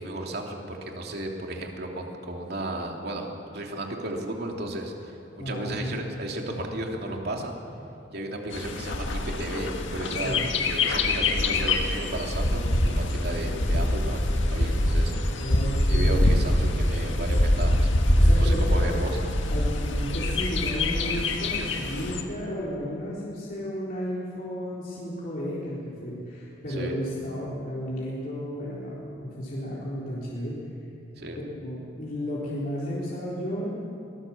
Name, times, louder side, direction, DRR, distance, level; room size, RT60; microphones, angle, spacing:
voice 1, 0.0-3.3 3.5-5.2 5.4-7.6 8.1-15.1 15.9-17.9 18.4-19.2 26.7-26.9 31.2-31.4, right 1 dB, 60° right, 1 dB, 2.9 m, -34 dB
voice 2, 5.4-6.0 10.1-10.4 15.4-16.4 18.2-18.9 19.5-30.6 31.3-33.7, equal, 50° left, -7 dB, 3.8 m, -33 dB
Bird, 8.5-22.2, left 1 dB, 90° left, 1.8 m, -24 dB
23.0 x 19.0 x 7.2 m, 2.6 s
head